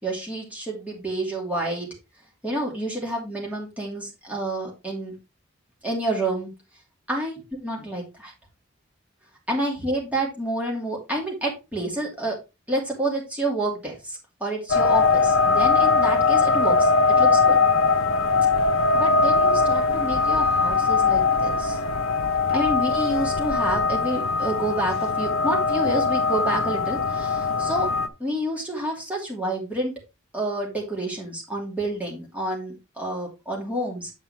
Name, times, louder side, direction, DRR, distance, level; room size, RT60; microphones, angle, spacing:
voice 1, 0.0-1.9 2.4-5.1 5.8-6.5 7.1-8.3 9.5-12.3 12.7-16.9 17.2-17.6 18.9-21.8 22.5-27.9 28.2-30.0 30.3-34.1, right 1 dB, 5° right, -2 dB, 2.8 m, -29 dB
sound 1, 14.7-28.1, left 4 dB, 80° left, 0.9 m, -21 dB
8.5 x 7.3 x 3.3 m, 0.25 s
head